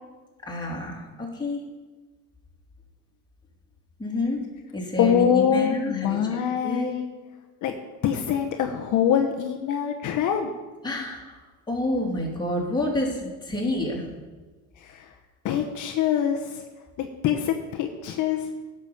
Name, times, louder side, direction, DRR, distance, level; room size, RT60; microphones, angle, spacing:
voice 1, 0.5-1.6 4.0-4.4 4.7-6.9 10.8-14.0, left 1 dB, 15° left, -3 dB, 3.1 m, -29 dB
voice 2, 5.0-7.0 7.6-7.8 8.0-10.5 14.8-15.1 15.4-16.6 17.0-18.5, left 8 dB, 60° left, 3 dB, 1.0 m, -24 dB
11.0 x 6.2 x 7.1 m, 1.3 s
cardioid pair, 105°, 34 cm